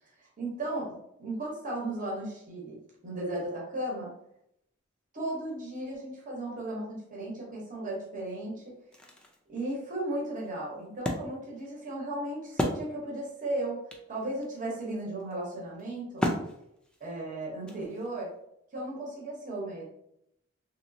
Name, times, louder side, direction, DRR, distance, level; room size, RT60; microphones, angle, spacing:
voice 1, 0.2-4.1 5.1-8.7 9.5-13.8 14.1-16.2 17.0-18.3 18.7-19.8, right 1 dB, 40° right, -4 dB, 0.9 m, -35 dB
Wood, 8.7-13.4 13.6-13.7 13.9-18.3, equal, 5° left, 0.4 m, -36 dB
3.0 x 3.0 x 2.7 m, 0.77 s
head